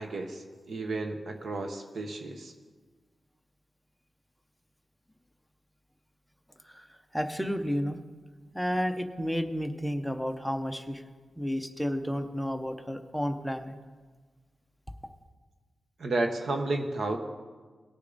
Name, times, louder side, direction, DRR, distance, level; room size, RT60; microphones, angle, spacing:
voice 1, 0.0-2.5 16.0-17.2, right 2 dB, 55° right, 5 dB, 0.9 m, -32 dB
voice 2, 6.6-8.0 8.5-11.0 11.4-13.7, equal, ahead, 7 dB, 0.6 m, -31 dB
18.5 x 6.5 x 3.9 m, 1.4 s
wide cardioid pair, 165°, 0 cm